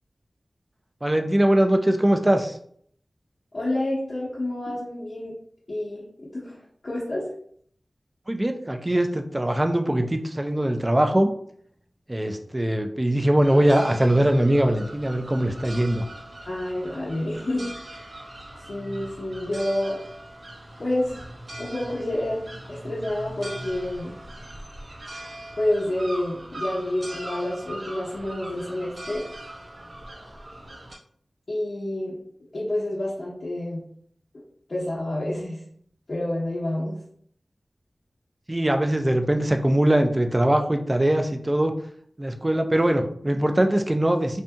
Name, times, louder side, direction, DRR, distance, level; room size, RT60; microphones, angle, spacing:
voice 1, 1.0-2.6 8.3-11.3 12.1-16.1 38.5-41.7 42.2-44.4, right 1 dB, 25° right, 5 dB, 0.4 m, -21 dB
voice 2, 3.5-5.3 5.7-6.6 6.8-7.3 16.5-18.1 18.5-20.0 20.8-21.2 21.6-24.1 25.6-29.3 31.5-32.2 32.5-33.8 34.7-35.6 36.1-37.0, left 1 dB, 65° left, -8 dB, 0.8 m, -28 dB
sound 1, 13.4-31.0, right 1 dB, 65° right, 0.8 m, -40 dB
2.7 x 2.6 x 2.2 m, 0.63 s
cardioid pair, 40°, 0 cm